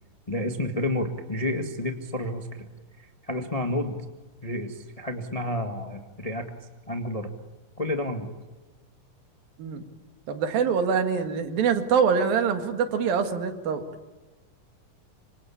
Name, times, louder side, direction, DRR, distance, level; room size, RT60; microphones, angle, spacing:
voice 1, 0.3-2.7 3.3-4.0 4.4-6.5 6.9-7.3 7.8-8.3, left 1 dB, 25° left, 5 dB, 0.7 m, -30 dB
voice 2, 10.3-13.8, right 6 dB, 80° right, 7 dB, 3.7 m, -24 dB
26.5 x 25.5 x 8.6 m, 1.2 s
omnidirectional pair, 4.1 m